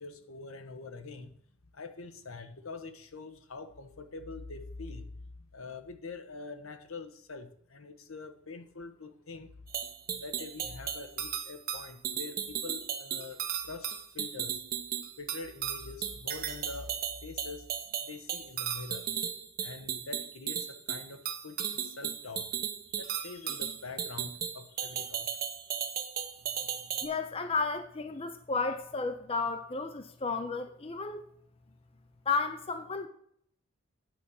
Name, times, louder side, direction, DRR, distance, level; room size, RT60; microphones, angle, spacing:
voice 1, 0.0-1.3 1.7-5.1 5.5-9.5 10.1-13.9 14.1-14.6 15.2-16.9 17.2-17.7 18.1-19.1 19.6-22.5 22.9-25.3 25.6-25.9, left 3 dB, 75° left, 9 dB, 1.0 m, -44 dB
sound 1, 9.7-27.1, right 9 dB, 45° right, 1.0 m, -35 dB
voice 2, 27.0-31.3 32.3-33.1, left 4 dB, 25° left, 8 dB, 0.6 m, -33 dB
9.2 x 5.2 x 7.0 m, 0.65 s
head